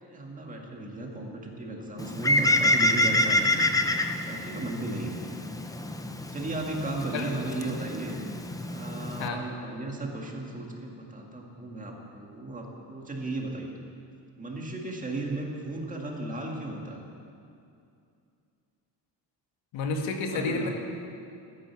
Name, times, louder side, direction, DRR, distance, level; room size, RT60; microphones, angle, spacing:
voice 1, 0.0-3.7 4.3-5.3 6.3-8.2 8.7-13.8 14.4-17.0 20.3-20.7, right 2 dB, 15° right, 0 dB, 1.9 m, -35 dB
Bird, 2.0-9.3, left 1 dB, 10° left, 0.4 m, -27 dB
voice 2, 19.7-20.7, left 3 dB, 85° left, 3 dB, 2.0 m, -30 dB
13.5 x 10.5 x 8.3 m, 2.5 s
cardioid pair, 170°, 44 cm